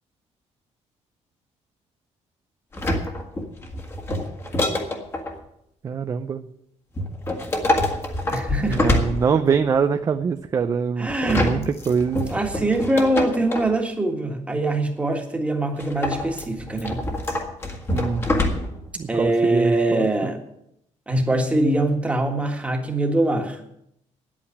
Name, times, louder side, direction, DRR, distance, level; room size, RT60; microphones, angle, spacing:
sound 1, 2.7-5.4 7.0-9.7 11.1-13.8 15.8-18.9 19.2-19.3, left 1 dB, 20° left, 1.6 m, -26 dB
voice 1, 5.8-6.4 8.6-12.3 17.9-18.3 19.0-20.1, right 6 dB, 30° right, 8 dB, 0.5 m, -24 dB
voice 2, 8.3-9.0 11.0-11.7 12.3-17.0 19.1-20.4 21.1-23.6, right 2 dB, 10° right, 3 dB, 1.7 m, -23 dB
10.0 x 8.6 x 9.7 m, 0.77 s
cardioid pair, 170°, 12 cm